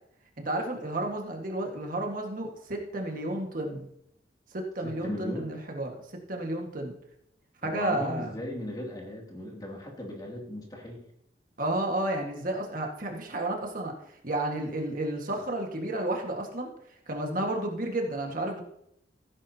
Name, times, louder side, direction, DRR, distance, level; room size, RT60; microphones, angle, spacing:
voice 1, 0.4-3.9 4.5-6.9 7.6-8.4 11.6-13.9 14.2-16.7 17.1-18.6, right 1 dB, 50° right, 2 dB, 1.7 m, -31 dB
voice 2, 4.8-5.5 7.6-11.0, left 1 dB, 25° left, -1 dB, 2.5 m, -37 dB
16.0 x 9.8 x 2.8 m, 0.76 s
head